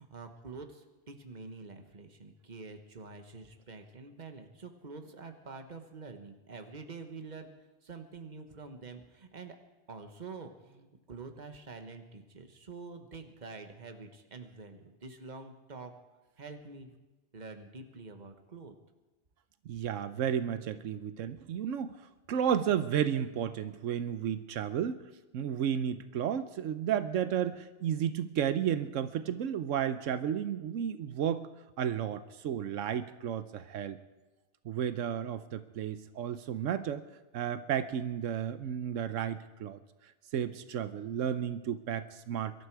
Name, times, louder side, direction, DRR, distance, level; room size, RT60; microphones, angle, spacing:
voice 1, 0.0-7.5 7.8-9.6 9.9-15.9 16.4-16.9 17.3-18.7, right 4 dB, 35° right, 6 dB, 1.4 m, -47 dB
voice 2, 19.7-21.9 22.3-25.0 25.3-31.5 31.8-34.0 34.6-37.0 37.3-39.8 40.3-42.5, right 9 dB, 85° right, 12 dB, 1.1 m, -32 dB
23.0 x 12.5 x 4.7 m, 1.1 s
omnidirectional pair, 1.3 m